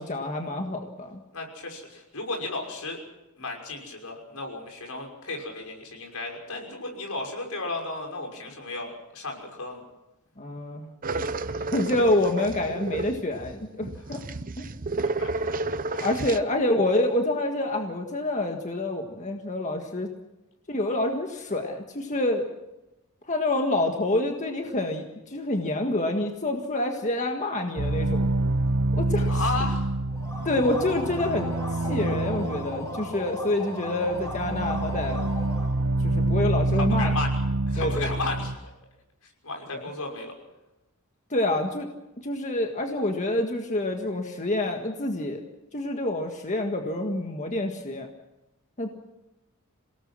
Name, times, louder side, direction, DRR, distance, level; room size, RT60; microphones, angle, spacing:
voice 1, 0.0-1.2 10.4-11.2 11.7-14.2 14.6-14.7 16.0-20.1 20.7-22.5 23.3-28.3 28.9-29.4 30.4-31.5 31.8-35.3 36.0-37.1 37.8-38.1 39.7-39.9 41.3-41.9 42.2-45.4 45.7-48.1 48.8-48.9, left 1 dB, 35° left, 3 dB, 1.7 m, -27 dB
voice 2, 1.3-3.0 3.4-9.8 14.1-14.2 15.2-15.5 15.9-16.1 29.3-29.9 36.8-37.4 37.7-38.5 39.4-40.3, left 2 dB, 80° left, 1 dB, 6.0 m, -34 dB
sound 1, 11.0-16.4, right 3 dB, 40° right, 0.8 m, -31 dB
sound 2, 27.8-38.6, right 2 dB, 65° right, 1.2 m, -27 dB
sound 3, 30.1-35.8, left 1 dB, 15° left, 6.4 m, -37 dB
28.0 x 18.0 x 6.2 m, 0.97 s
head